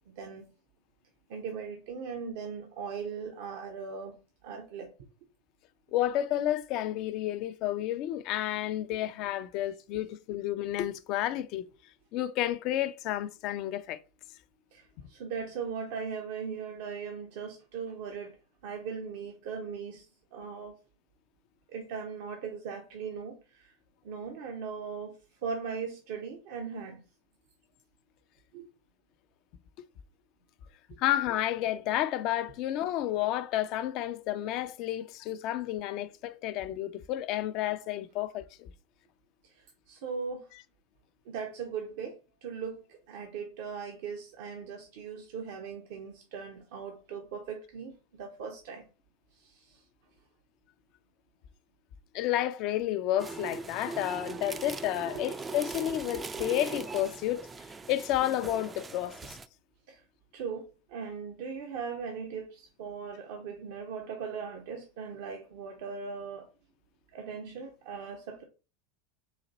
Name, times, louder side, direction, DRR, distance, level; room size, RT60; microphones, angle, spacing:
voice 1, 1.3-4.2 4.4-4.9 8.9-9.0 14.7-18.4 18.6-20.1 20.3-20.7 21.7-23.7 24.0-25.2 25.4-27.0 28.5-28.6 30.9-31.0 39.4-40.5 41.3-48.9 49.4-49.8 55.1-55.2 59.9-60.0 60.3-66.5 67.1-68.4, right 6 dB, 60° right, 0.7 m, -39 dB
voice 2, 5.9-11.7 12.1-14.0 31.0-38.7 52.1-57.5 57.9-59.4, left 13 dB, 50° left, 0.4 m, -31 dB
sound 1, 53.2-59.5, right 4 dB, 20° right, 0.4 m, -40 dB
4.0 x 2.5 x 4.0 m
hypercardioid pair, 85°, 0 cm